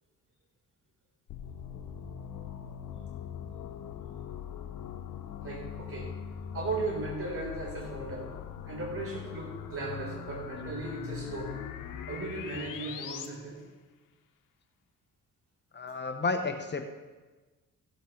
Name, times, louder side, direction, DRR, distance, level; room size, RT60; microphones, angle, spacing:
sound 1, 1.3-13.3, left 8 dB, 80° left, 1.0 m, -41 dB
voice 1, 5.4-6.1 6.5-8.3 8.6-11.6 12.1-13.6, right 2 dB, 45° right, -1 dB, 4.3 m, -37 dB
voice 2, 15.7-16.9, left 3 dB, 35° left, 6 dB, 1.0 m, -31 dB
16.0 x 8.1 x 4.5 m, 1.3 s
cardioid pair, 80°, 32 cm